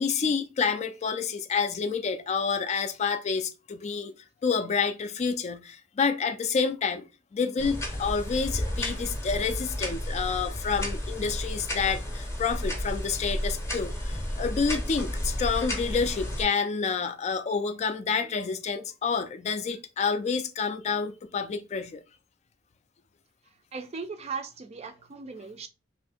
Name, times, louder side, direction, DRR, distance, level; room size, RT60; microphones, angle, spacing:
voice 1, 0.0-4.1 4.4-7.1 7.3-22.0, left 5 dB, 35° left, 0.3 m, -28 dB
sound 1, 7.6-16.5, left 1 dB, 15° left, 0.7 m, -32 dB
voice 2, 23.7-25.7, right 5 dB, 35° right, 0.4 m, -37 dB
2.6 x 2.6 x 3.4 m
head